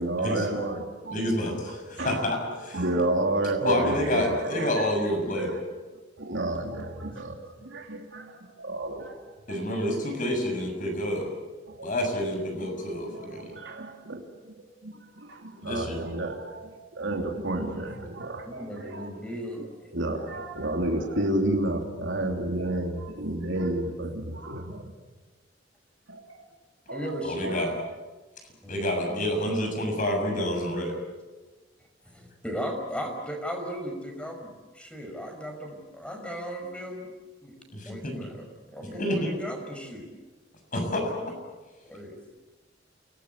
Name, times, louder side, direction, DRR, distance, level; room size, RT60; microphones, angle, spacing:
voice 1, 0.0-1.2 1.6-1.7 2.0-5.6 6.2-9.2 9.5-9.8 11.7-11.9 13.0-14.2 14.5-19.1 19.9-24.9 26.1-26.4 26.9-27.1 27.4-27.8, right 1 dB, 85° right, 1 dB, 3.2 m, -31 dB
voice 2, 1.1-2.8 3.6-5.5 9.5-11.3 11.8-13.5 15.6-16.0 27.2-27.7 28.7-31.0 37.7-38.3 39.0-39.3 40.7-41.3, left 1 dB, 45° left, 3 dB, 7.0 m, -28 dB
voice 3, 18.4-19.9 26.9-27.6 28.6-28.8 29.1-29.3 32.1-37.1 37.4-37.6 37.8-38.4 38.7-40.1 41.8-42.2, equal, 5° left, 3 dB, 5.5 m, -36 dB
28.5 x 19.5 x 8.3 m, 1.2 s
head